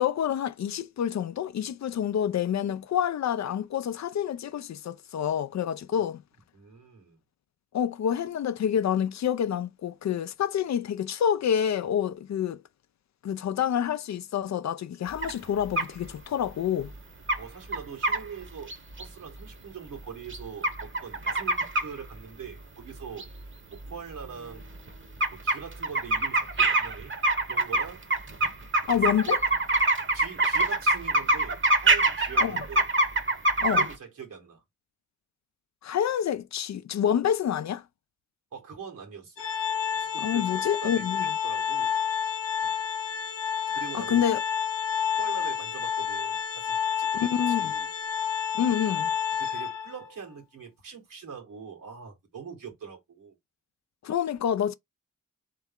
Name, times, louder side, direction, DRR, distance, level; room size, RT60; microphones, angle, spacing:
voice 1, 0.0-6.2 7.7-12.6 13.2-16.9 28.9-29.4 32.4-32.6 33.6-33.8 35.8-37.8 40.2-41.2 43.9-44.4 47.2-47.7 48.5-49.1 54.0-54.7, left 9 dB, 55° left, 0.5 m, -27 dB
voice 2, 6.5-7.2 17.4-18.7 19.0-23.3 23.7-24.7 25.3-27.1 27.4-28.0 29.1-29.3 30.1-32.9 33.7-34.6 38.5-39.4 40.0-41.9 42.6-42.8 43.7-44.3 45.2-47.9 49.4-53.4, right 6 dB, 80° right, 1.7 m, -43 dB
sound 1, 15.2-15.3 15.8-15.9 16.9-17.0 17.3-17.4 17.7-18.2 18.7-19.0 20.3-21.9 23.2-23.3 23.8-23.9 24.2-24.3 24.6-24.9 25.2-33.9, right 2 dB, 35° right, 1.0 m, -24 dB
Organ, 39.4-50.1, left 8 dB, 90° left, 0.7 m, -29 dB
3.5 x 3.3 x 3.6 m
supercardioid pair, 40°, 32 cm